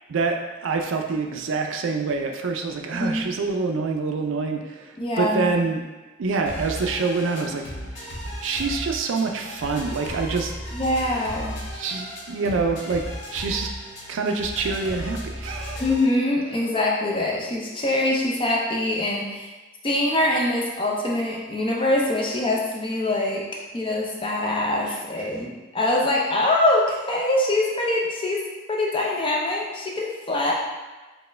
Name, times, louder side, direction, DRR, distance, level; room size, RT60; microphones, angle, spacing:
voice 1, 0.1-5.8 6.2-7.6 8.0-8.1 8.4-10.5 11.7-13.0 13.3-13.7 14.1-15.8 24.9-25.3, right 4 dB, 70° right, 3 dB, 0.4 m, -26 dB
voice 2, 5.0-5.5 10.7-11.6 15.8-19.5 19.8-23.4 23.7-28.4 28.7-30.5, left 1 dB, 25° left, -2 dB, 0.5 m, -24 dB
sound 1, 6.5-16.1, equal, 60° left, 0.8 m, -35 dB
4.2 x 2.2 x 3.3 m, 1.2 s
head